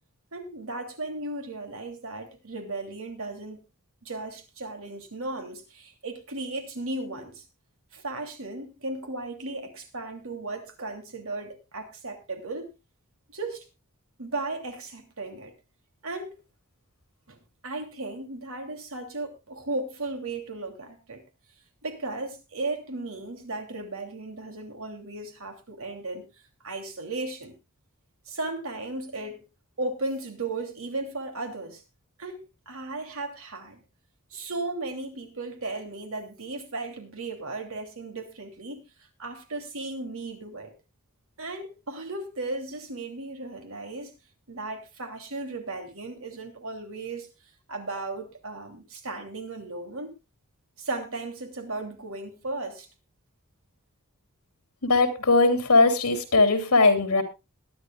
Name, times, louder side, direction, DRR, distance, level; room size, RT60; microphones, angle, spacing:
voice 1, 0.3-3.6 4.0-7.4 7.9-12.7 13.3-13.6 14.2-15.5 16.0-16.4 17.3-21.2 21.8-26.3 26.6-27.5 28.3-29.5 29.8-31.8 32.2-33.8 34.3-40.7 41.4-44.1 44.5-47.3 47.7-50.1 50.8-52.9, right 2 dB, 65° right, 3.0 m, -35 dB
voice 2, 54.8-57.2, left 3 dB, 70° left, 3.0 m, -20 dB
21.5 x 10.5 x 2.4 m
head